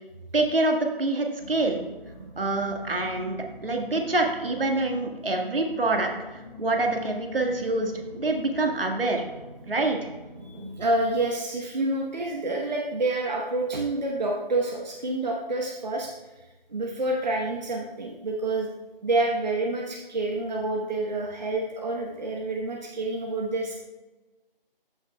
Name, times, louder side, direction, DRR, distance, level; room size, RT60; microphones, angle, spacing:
voice 1, 0.3-1.8 2.4-9.2 9.7-10.1, right 2 dB, 75° right, 2 dB, 1.6 m, -26 dB
sound 1, 1.4-11.3, left 1 dB, 10° left, 1.4 m, -44 dB
voice 2, 10.4-16.1 16.7-18.7 19.0-23.8, right 2 dB, 50° right, -1 dB, 1.0 m, -28 dB
14.0 x 6.1 x 2.2 m, 1.2 s
figure-of-eight pair, 170°, 29 cm